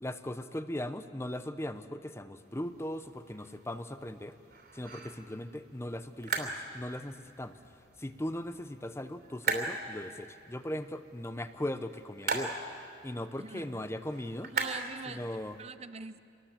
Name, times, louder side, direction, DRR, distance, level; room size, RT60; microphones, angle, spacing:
voice 1, 0.0-4.4 4.7-7.6 8.0-12.6 13.0-14.5 15.1-15.6, left 1 dB, 15° left, 11 dB, 0.7 m, -38 dB
sound 1, 2.4-15.6, right 4 dB, 55° right, 3.0 m, -40 dB
voice 2, 13.4-13.8 14.5-15.3 15.6-16.2, right 4 dB, 35° right, 12 dB, 0.6 m, -43 dB
25.5 x 19.5 x 7.4 m, 2.4 s
head